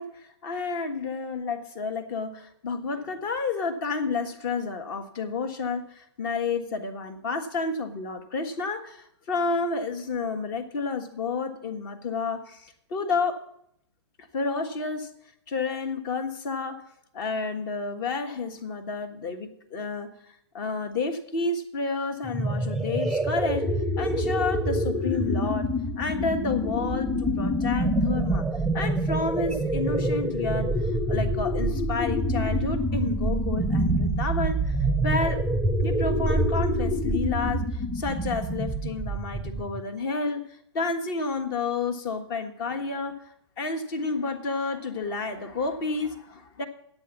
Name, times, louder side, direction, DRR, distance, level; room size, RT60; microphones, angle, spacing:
voice 1, 0.0-13.4 14.2-15.1 15.5-16.8 17.1-20.1 20.5-23.7 24.0-25.7 26.0-28.5 28.7-30.7 31.1-34.8 35.0-35.4 35.8-40.5 40.7-43.2 43.6-46.7, left 4 dB, 45° left, 7 dB, 1.4 m, -30 dB
sound 1, 22.2-39.8, right 1 dB, ahead, 0.7 m, -26 dB
9.9 x 8.1 x 7.3 m, 0.72 s
hypercardioid pair, 120°, 15 cm